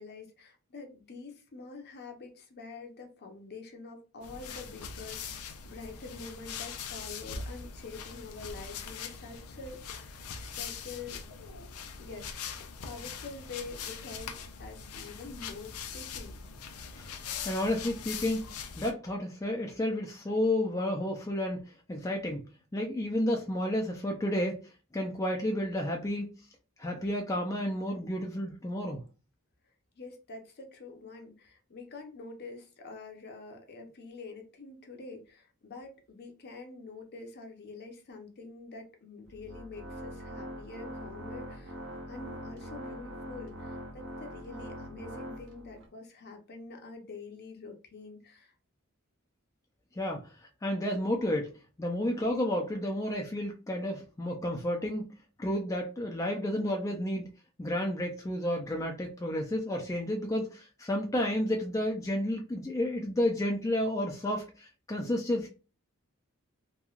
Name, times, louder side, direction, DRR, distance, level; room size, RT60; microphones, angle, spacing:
voice 1, 0.0-11.2 12.0-12.3 12.8-16.3 30.0-48.5, left 3 dB, 50° left, 4 dB, 0.7 m, -46 dB
sound 1, 4.2-18.9, left 6 dB, 85° left, 0.5 m, -42 dB
voice 2, 17.5-18.5 18.8-24.6 24.9-26.3 26.8-29.0 50.0-50.3 50.6-51.5 51.8-55.1 55.4-57.3 57.6-65.5, left 1 dB, 15° left, 0 dB, 0.4 m, -31 dB
Organ, 39.2-45.9, equal, 60° right, 0.7 m, -43 dB
3.0 x 2.2 x 2.3 m, 0.33 s
head